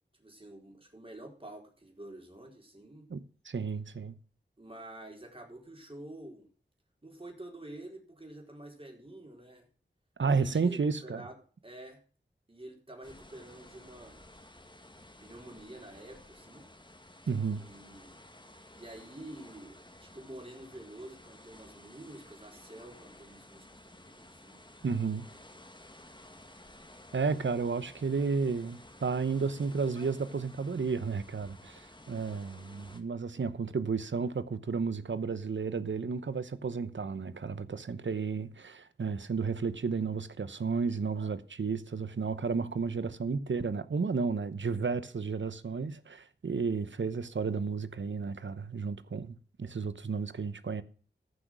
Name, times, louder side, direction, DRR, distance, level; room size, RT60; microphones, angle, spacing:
voice 1, 0.2-3.1 4.6-6.5 7.0-9.7 10.2-12.0 12.5-14.2 15.2-16.7 17.5-18.2 18.7-24.6, right 1 dB, 30° right, 4.3 m, -48 dB
voice 2, 3.1-4.1 10.2-11.2 17.3-17.6 24.8-25.3 27.1-31.8 32.1-50.8, right 5 dB, 85° right, 0.9 m, -32 dB
sound 1, 13.0-33.0, left 1 dB, 25° left, 2.0 m, -54 dB
14.5 x 6.4 x 6.2 m
cardioid pair, 40°, 19 cm